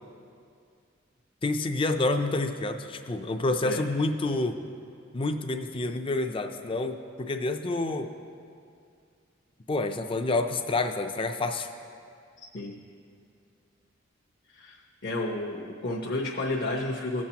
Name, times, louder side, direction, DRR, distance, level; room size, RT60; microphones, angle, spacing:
voice 1, 1.4-4.6 5.1-8.1 9.7-11.7, left 2 dB, 25° left, 7 dB, 0.4 m, -28 dB
voice 2, 15.0-17.2, left 2 dB, 55° left, -2 dB, 0.8 m, -31 dB
17.0 x 7.3 x 2.9 m, 2.4 s
head